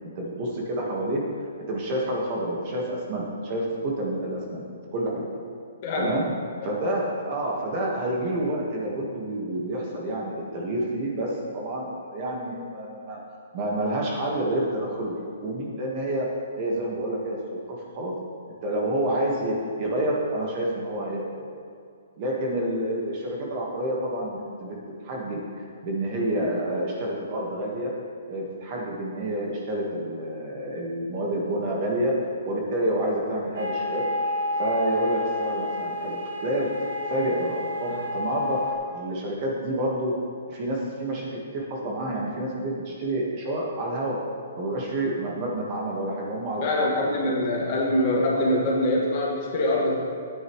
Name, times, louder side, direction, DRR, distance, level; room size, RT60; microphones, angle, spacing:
voice 1, 0.1-1.2 1.7-4.6 4.9-5.2 6.0-6.3 6.6-13.2 13.5-15.2 15.4-16.2 16.6-18.1 18.5-21.6 22.2-27.9 28.3-32.2 32.5-34.0 34.6-36.7 37.1-40.1 40.5-44.2 44.6-47.4, right 1 dB, 30° right, -2 dB, 1.5 m, -28 dB
voice 2, 5.8-6.1 6.6-6.7 37.9-38.0 46.6-50.0, left 1 dB, 30° left, -3 dB, 2.0 m, -24 dB
sound 1, 33.5-38.7, left 1 dB, 80° right, 1.8 m, -30 dB
14.0 x 9.4 x 3.2 m, 2.3 s
hypercardioid pair, 175°, 0 cm